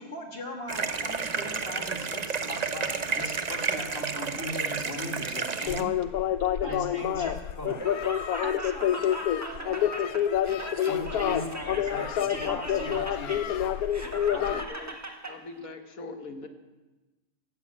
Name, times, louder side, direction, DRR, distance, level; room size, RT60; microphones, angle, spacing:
voice 1, 0.0-5.9 6.6-7.8 10.9-13.6, left 1 dB, 40° left, 1 dB, 2.3 m, -39 dB
sound 1, 0.7-5.8, right 5 dB, 35° right, 0.7 m, -31 dB
sound 2, 5.7-14.6, left 10 dB, 90° left, 1.2 m, -28 dB
voice 2, 6.6-7.3 8.4-10.2 12.3-13.0 14.3-14.9, right 3 dB, 55° right, 8 dB, 1.2 m, -44 dB
Laughter, 7.6-15.3, right 1 dB, 10° right, 1.3 m, -39 dB
voice 3, 11.1-11.5 14.3-14.9 15.3-16.5, left 3 dB, 70° left, 5 dB, 1.7 m, -41 dB
14.0 x 8.6 x 8.6 m, 1.2 s
omnidirectional pair, 1.5 m